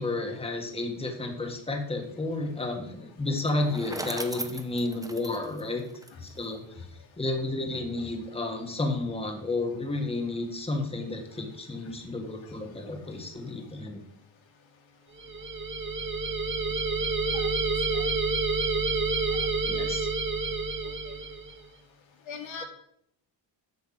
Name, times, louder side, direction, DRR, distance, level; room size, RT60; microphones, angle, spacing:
voice 1, 0.0-5.8 6.2-6.6 7.2-14.0 19.6-20.1, left 2 dB, 15° left, 3 dB, 1.7 m, -31 dB
Bicycle, 3.3-6.5, right 2 dB, 10° right, 0.8 m, -39 dB
sound 1, 15.2-21.6, right 3 dB, 25° right, 1.2 m, -28 dB
voice 2, 22.3-22.6, left 5 dB, 80° left, 2 dB, 2.5 m, -39 dB
8.1 x 7.0 x 7.6 m, 0.70 s
cardioid pair, 145°, 46 cm